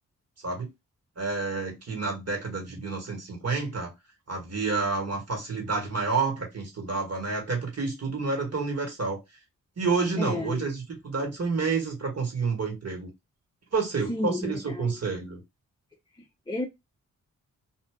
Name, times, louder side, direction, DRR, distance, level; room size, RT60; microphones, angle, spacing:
voice 1, 1.2-3.9 4.3-9.2 9.8-13.1 13.7-15.4, right 4 dB, 50° right, 1.8 m, -29 dB
voice 2, 10.2-10.7 14.1-15.0 16.5-16.7, left 1 dB, 15° left, 0.6 m, -31 dB
2.7 x 2.3 x 3.6 m
cardioid pair, 55°, 33 cm